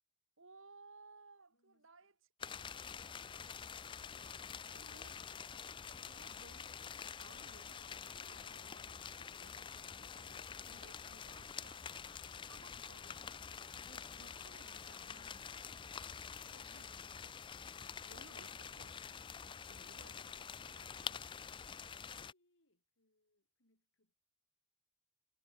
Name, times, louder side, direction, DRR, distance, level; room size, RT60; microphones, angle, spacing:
voice 1, 0.4-2.1 4.7-5.2 6.1-13.3 13.8-17.2 18.1-21.3, right 3 dB, 65° right, 2.8 m, -63 dB
voice 2, 1.5-2.1 21.7-24.2, left 1 dB, 60° left, 7.1 m, -81 dB
sound 1, 2.4-22.3, left 7 dB, 20° left, 0.3 m, -47 dB
head